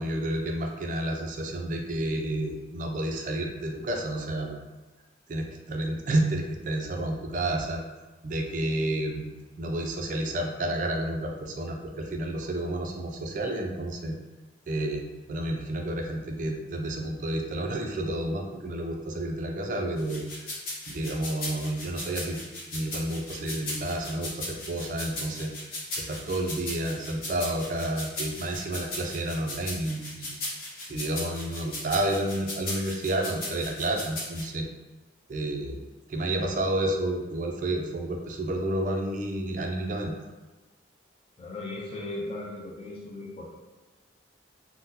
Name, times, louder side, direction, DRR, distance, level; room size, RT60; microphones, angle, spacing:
voice 1, 0.0-4.6 5.3-7.8 8.2-9.3 9.6-14.2 14.7-20.5 20.9-22.4 22.7-25.5 26.0-30.3 30.9-34.7 35.3-35.8 36.1-40.1, right 1 dB, 45° right, 2 dB, 0.3 m, -30 dB
sound 1, 20.0-34.4, left 2 dB, 50° left, 0.9 m, -37 dB
voice 2, 41.4-43.5, left 2 dB, 30° left, -3 dB, 0.4 m, -37 dB
3.6 x 2.1 x 2.7 m, 1.2 s
head